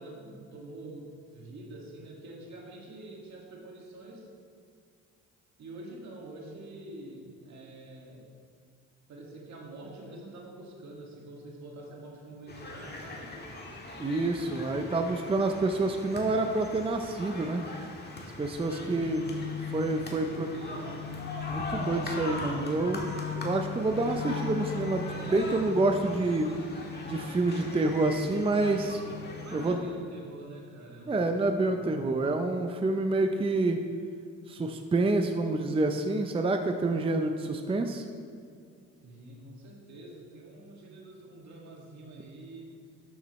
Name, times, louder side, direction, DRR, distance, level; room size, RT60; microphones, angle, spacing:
voice 1, 0.0-4.3 5.6-8.3 9.1-13.4 18.7-19.1 20.1-21.3 29.4-31.8 39.0-42.8, right 1 dB, 65° right, -1 dB, 2.0 m, -46 dB
sound 1, 12.5-29.8, left 2 dB, 35° left, 1.6 m, -41 dB
voice 2, 14.0-17.6 18.4-19.2 19.7-20.5 21.5-23.1 23.4-26.5 27.1-29.0 29.5-29.8 31.1-33.8 34.5-38.0, right 2 dB, 20° right, 5 dB, 0.5 m, -28 dB
sound 2, 18.8-30.1, left 5 dB, 65° left, 1.7 m, -40 dB
12.0 x 7.2 x 3.1 m, 2.2 s
cardioid pair, 90°, 30 cm